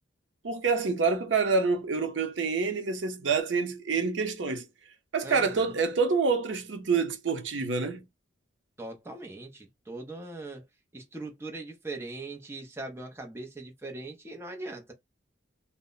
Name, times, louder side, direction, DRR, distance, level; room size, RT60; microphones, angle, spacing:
voice 1, 0.4-4.7 5.1-8.0, right 4 dB, 80° right, 0.6 m, -27 dB
voice 2, 5.2-5.7 8.8-10.6 10.9-14.9, right 2 dB, 15° right, 0.5 m, -40 dB
2.0 x 2.0 x 3.7 m
head